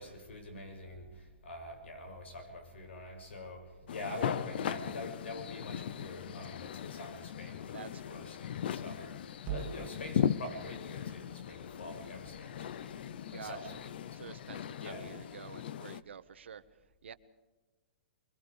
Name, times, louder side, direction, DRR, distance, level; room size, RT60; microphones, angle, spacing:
voice 1, 0.0-14.4 14.8-15.1, left 1 dB, 85° left, 6 dB, 6.8 m, -46 dB
sound 1, 3.9-16.0, left 9 dB, 60° left, 0.8 m, -38 dB
voice 2, 7.7-8.3 13.3-13.8 14.2-16.6 17.0-17.1, right 7 dB, 90° right, 12 dB, 1.4 m, -49 dB
sound 2, 9.4-13.8, right 10 dB, 25° right, 2.0 m, -47 dB
25.5 x 22.5 x 5.0 m, 1.2 s
hypercardioid pair, 160°, 6 cm